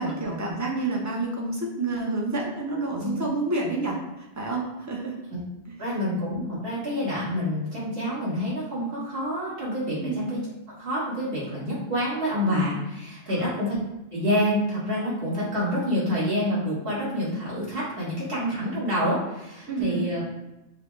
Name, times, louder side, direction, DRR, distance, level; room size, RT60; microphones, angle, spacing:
voice 1, 0.0-5.2 10.0-10.2 13.3-13.5 19.7-20.1, right 3 dB, 20° right, -1 dB, 0.6 m, -29 dB
voice 2, 5.8-10.4 10.8-13.8 14.1-20.2, equal, 60° right, -7 dB, 1.8 m, -27 dB
5.8 x 2.2 x 3.3 m, 0.96 s
omnidirectional pair, 1.1 m